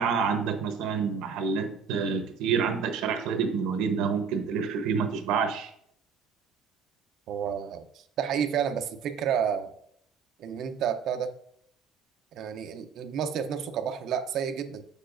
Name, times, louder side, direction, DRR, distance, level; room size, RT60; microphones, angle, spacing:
voice 1, 0.0-5.7, right 6 dB, 75° right, 6 dB, 0.9 m, -28 dB
voice 2, 7.3-7.9 8.2-9.7 10.4-11.3 12.3-14.8, right 8 dB, 50° right, 7 dB, 0.6 m, -30 dB
7.6 x 6.7 x 2.6 m, 0.67 s
cardioid pair, 180°, 0 cm